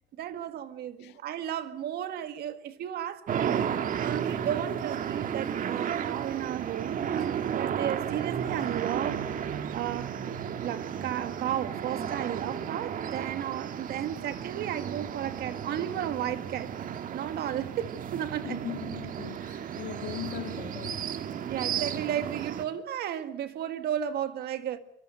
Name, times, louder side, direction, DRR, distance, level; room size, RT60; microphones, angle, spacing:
voice 1, 0.2-3.7 4.0-9.2 9.7-10.3 10.6-16.7 17.1-18.6 21.5-24.8, right 10 dB, 70° right, 2.0 m, -34 dB
sound 1, 3.3-22.6, right 8 dB, 55° right, 1.8 m, -33 dB
voice 2, 18.4-21.1, left 12 dB, 80° left, 2.1 m, -39 dB
24.0 x 24.0 x 6.6 m
cardioid pair, 110°, 17 cm